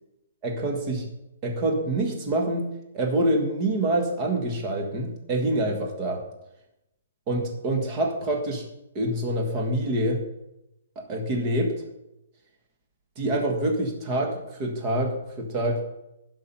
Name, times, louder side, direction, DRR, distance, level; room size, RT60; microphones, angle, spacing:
voice 1, 0.4-1.0 1.4-2.7 2.9-6.2 7.3-8.6 8.9-10.2 11.1-11.7 13.2-15.8, right 1 dB, 20° right, 2 dB, 1.5 m, -26 dB
11.5 x 6.1 x 5.6 m, 0.91 s
hypercardioid pair, 175°, 0 cm